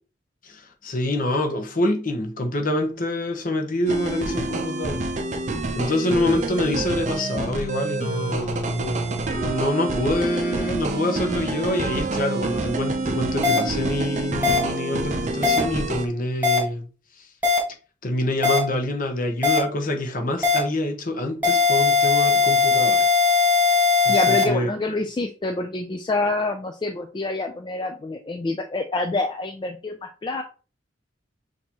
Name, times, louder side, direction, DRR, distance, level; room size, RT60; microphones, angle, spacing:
voice 1, 0.4-5.1 5.7-16.9 17.2-17.3 18.0-23.1 24.0-24.7, left 1 dB, 45° left, 0.9 m, -26 dB
sound 1, 3.9-16.1, right 2 dB, 40° right, 0.5 m, -27 dB
sound 2, 13.4-13.6 14.4-14.6 15.4-15.6 16.4-16.6 17.4-17.6 18.4-18.6 19.4-19.6 20.4-20.6 21.4-24.4, left 4 dB, 10° right, 1.4 m, -18 dB
voice 2, 24.1-30.4, left 2 dB, 25° left, 0.3 m, -27 dB
6.4 x 2.7 x 2.9 m
head